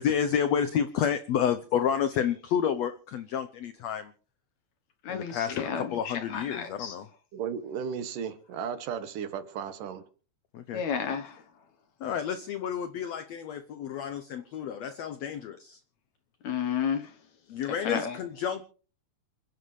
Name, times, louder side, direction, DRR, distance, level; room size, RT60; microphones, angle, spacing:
voice 1, 0.0-4.1 5.1-7.1 10.5-10.8 12.0-15.8 17.5-18.6, left 8 dB, 85° left, 1.5 m, -30 dB
voice 2, 5.1-7.0 10.7-11.4 16.4-17.1 17.8-18.2, left 7 dB, 65° left, 2.0 m, -32 dB
voice 3, 7.3-10.0, right 7 dB, 70° right, 2.7 m, -35 dB
28.0 x 11.0 x 3.2 m
omnidirectional pair, 4.2 m